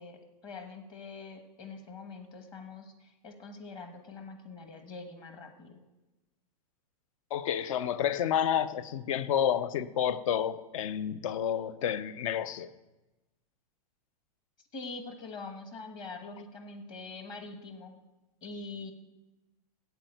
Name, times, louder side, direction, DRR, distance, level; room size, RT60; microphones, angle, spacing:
voice 1, 0.0-5.8 14.6-18.0 18.4-18.9, left 3 dB, 20° left, 1.2 m, -44 dB
voice 2, 7.3-12.7, left 9 dB, 55° left, 0.7 m, -30 dB
8.7 x 8.2 x 7.8 m
supercardioid pair, 165°, 20 cm